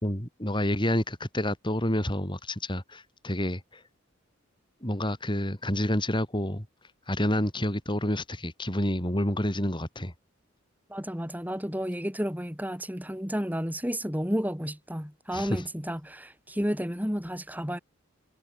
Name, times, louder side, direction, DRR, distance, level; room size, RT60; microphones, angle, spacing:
voice 1, 0.0-3.8 4.8-6.6 7.1-10.1 15.3-15.6, left 1 dB, 25° left, 5.3 m, -29 dB
voice 2, 10.9-17.8, equal, 10° right, 7.8 m, -31 dB
head